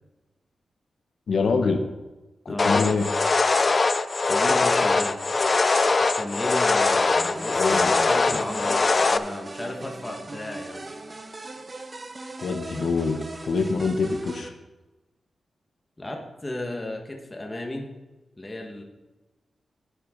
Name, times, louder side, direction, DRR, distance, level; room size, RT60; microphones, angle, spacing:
voice 1, 1.3-1.8 2.4-3.1 7.6-7.9 12.4-14.5, left 4 dB, 65° left, 5 dB, 0.9 m, -25 dB
voice 2, 2.5-2.9 4.3-5.2 6.2-10.9 16.0-17.9 18.4-18.8, left 1 dB, 15° left, 1 dB, 1.5 m, -34 dB
sound 1, 2.6-9.2, left 3 dB, 35° left, 0.5 m, -22 dB
sound 2, 7.0-14.5, right 2 dB, 30° right, 0.8 m, -39 dB
11.5 x 9.5 x 3.9 m, 1.1 s
wide cardioid pair, 135°, 0 cm